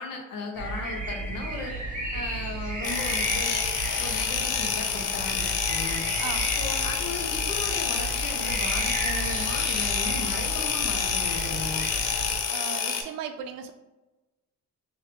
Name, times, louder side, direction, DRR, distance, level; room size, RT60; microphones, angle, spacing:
voice 1, 0.0-1.7 2.1-3.6 4.0-6.0 6.6-11.9, left 3 dB, 80° left, 2 dB, 0.9 m, -36 dB
sound 1, 0.5-12.4, right 2 dB, 25° right, 0.7 m, -34 dB
sound 2, 2.8-13.0, left 7 dB, 50° left, 0.4 m, -28 dB
voice 2, 12.5-13.7, right 8 dB, 90° right, 7 dB, 0.5 m, -36 dB
3.3 x 2.7 x 3.0 m, 1.1 s
cardioid pair, 155°, 34 cm